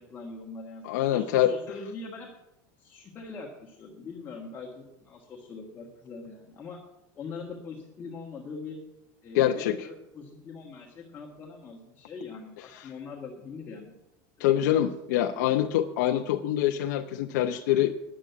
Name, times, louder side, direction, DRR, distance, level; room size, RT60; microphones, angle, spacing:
voice 1, 0.0-2.3 2.8-6.8 7.2-8.8 9.2-13.9 14.4-14.6 15.2-15.5, left 4 dB, 20° left, -1 dB, 1.6 m, -42 dB
voice 2, 0.8-1.5 9.3-9.9 12.7-12.9 14.4-17.9, left 12 dB, 75° left, 5 dB, 0.7 m, -25 dB
10.0 x 7.5 x 9.3 m, 0.92 s
supercardioid pair, 165°, 10 cm